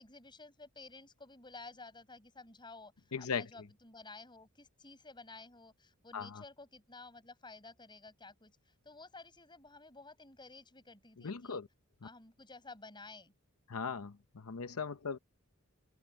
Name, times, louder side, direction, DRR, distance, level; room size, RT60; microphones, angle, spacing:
voice 1, 0.0-11.6 12.0-13.3, left 3 dB, 20° left, 7.4 m, -53 dB
voice 2, 3.1-3.5 6.1-6.4 11.2-11.7 13.7-15.2, left 5 dB, 75° left, 0.8 m, -38 dB
open air
head